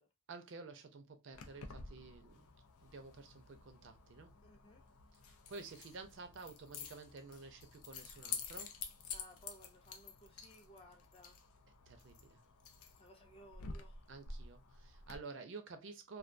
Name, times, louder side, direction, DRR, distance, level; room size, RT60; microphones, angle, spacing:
voice 1, 0.3-2.5 2.8-4.3 5.1-8.7 11.9-12.4 14.1-16.2, right 4 dB, 55° right, 0.4 m, -51 dB
Keys jangling, 1.3-15.2, left 5 dB, 90° left, 0.5 m, -50 dB
voice 2, 4.4-4.8 9.1-11.4 13.0-14.1, equal, 25° left, 0.4 m, -60 dB
2.2 x 2.2 x 2.5 m
head